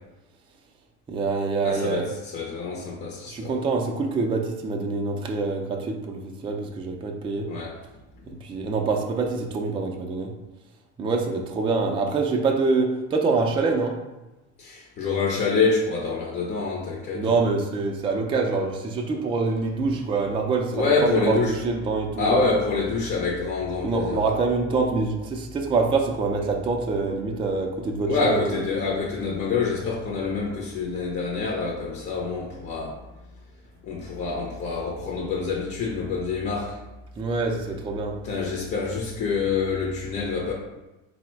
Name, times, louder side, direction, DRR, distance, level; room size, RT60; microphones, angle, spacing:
voice 1, 1.1-2.0 3.2-7.5 8.4-10.3 11.0-14.0 17.1-22.4 23.8-28.6 37.2-38.2, right 4 dB, 15° right, 2 dB, 0.3 m, -25 dB
voice 2, 1.6-3.6 7.5-7.8 14.6-17.4 20.7-21.6 22.2-24.2 28.1-33.0 33.8-36.8 38.2-40.5, left 4 dB, 30° left, -2 dB, 0.5 m, -26 dB
3.8 x 2.0 x 4.4 m, 1.0 s
supercardioid pair, 125°, 34 cm